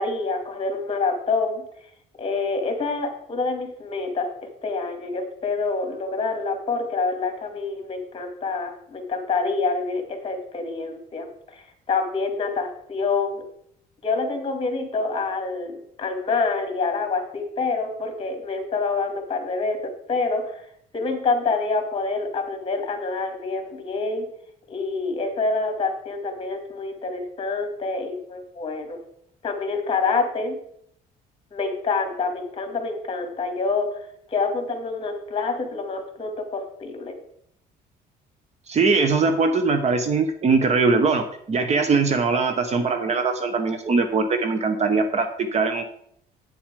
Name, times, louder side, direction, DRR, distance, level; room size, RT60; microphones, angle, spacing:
voice 1, 0.0-1.6 2.2-4.3 4.6-13.4 14.0-20.7 20.9-24.3 24.7-29.0 29.4-30.5 31.5-37.1, left 4 dB, 35° left, 5 dB, 2.3 m, -27 dB
voice 2, 38.7-45.8, right 4 dB, 40° right, 8 dB, 1.1 m, -21 dB
9.0 x 7.4 x 4.8 m, 0.68 s
cardioid pair, 110°, 17 cm